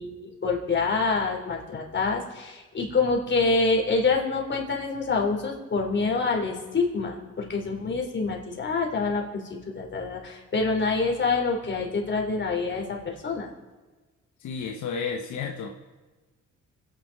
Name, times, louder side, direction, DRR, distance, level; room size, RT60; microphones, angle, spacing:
voice 1, 0.0-9.4 9.7-13.5, left 4 dB, 40° left, 0 dB, 3.7 m, -26 dB
voice 2, 14.4-15.8, left 5 dB, 75° left, 2 dB, 1.2 m, -32 dB
27.0 x 9.3 x 4.8 m, 1.3 s
cardioid pair, 90°, 30 cm